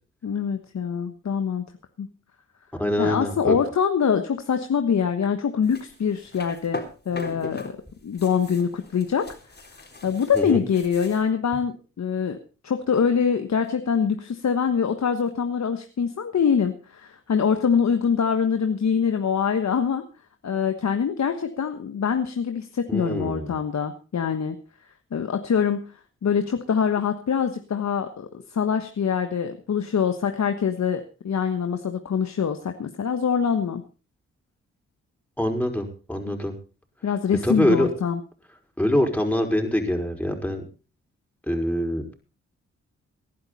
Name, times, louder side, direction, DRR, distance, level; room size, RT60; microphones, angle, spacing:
voice 1, 0.2-1.7 2.0-2.1 3.0-7.8 8.0-9.3 10.0-12.4 12.6-20.1 20.4-24.6 25.1-25.9 26.2-33.8 36.3-36.4 37.0-38.2, left 7 dB, 60° left, 7 dB, 1.3 m, -24 dB
voice 2, 2.7-3.6 10.3-10.6 22.9-23.5 35.4-36.5 37.4-37.9 38.8-40.6 41.5-42.1, left 1 dB, 5° left, 2 dB, 5.3 m, -24 dB
sound 1, 5.6-7.7 8.0-11.3, left 2 dB, 30° left, 4.0 m, -39 dB
18.5 x 11.0 x 4.2 m, 0.35 s
supercardioid pair, 45°, 31 cm